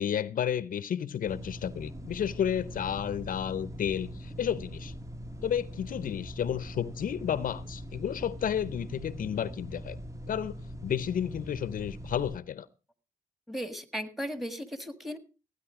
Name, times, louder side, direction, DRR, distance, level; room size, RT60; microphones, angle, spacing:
voice 1, 0.0-4.9 5.4-10.0 10.3-12.7, left 9 dB, 60° left, 0.7 m, -32 dB
sound 1, 1.3-12.4, equal, 20° right, 1.3 m, -42 dB
voice 2, 13.5-15.2, equal, ahead, 1.7 m, -36 dB
16.0 x 9.5 x 4.9 m
cardioid pair, 80°, 16 cm